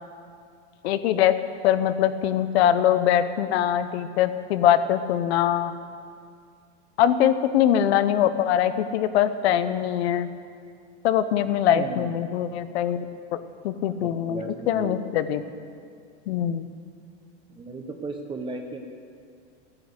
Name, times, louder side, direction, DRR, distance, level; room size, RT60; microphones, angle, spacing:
voice 1, 0.8-1.3 1.6-5.8 7.0-10.3 11.0-13.0 13.6-15.4 16.3-16.7, left 10 dB, 65° left, 12 dB, 0.9 m, -22 dB
voice 2, 11.7-12.0 13.9-15.1 17.6-18.8, right 3 dB, 15° right, 3 dB, 1.0 m, -36 dB
13.5 x 10.0 x 8.1 m, 2.2 s
supercardioid pair, 135°, 34 cm